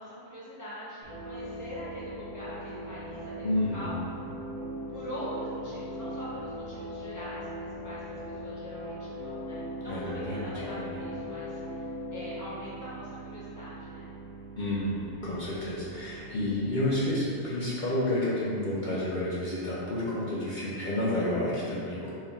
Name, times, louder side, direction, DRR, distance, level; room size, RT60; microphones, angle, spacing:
voice 1, 0.0-4.0 4.9-14.1, equal, 20° right, -10 dB, 0.5 m, -43 dB
sound 1, 1.0-17.8, equal, 10° left, 0.9 m, -40 dB
voice 2, 3.4-4.0 9.9-11.0 14.6-22.1, left 1 dB, 50° left, -7 dB, 0.7 m, -30 dB
4.4 x 3.4 x 2.3 m, 2.5 s
omnidirectional pair, 1.2 m